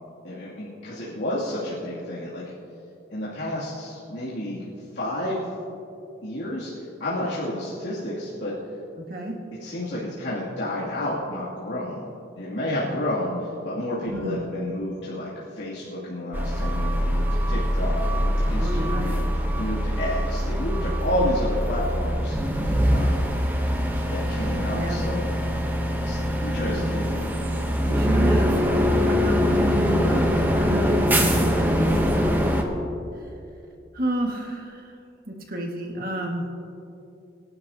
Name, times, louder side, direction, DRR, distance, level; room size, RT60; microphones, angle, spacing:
voice 1, 0.2-2.5 3.1-4.6 4.9-5.5 6.2-8.6 9.6-12.0 12.4-19.3 19.5-22.4 22.9-23.3 24.1-25.3 26.0-27.0, left 1 dB, 85° left, -10 dB, 2.7 m, -30 dB
voice 2, 14.1-14.4 18.5-19.1 24.7-25.0 26.5-26.9 27.8-28.6 29.0-32.4 33.9-35.0 35.3-36.5, right 1 dB, 50° right, 0 dB, 1.8 m, -30 dB
sound 1, 16.3-32.6, equal, 10° right, 0.9 m, -23 dB
24.0 x 11.5 x 2.9 m, 2.8 s
head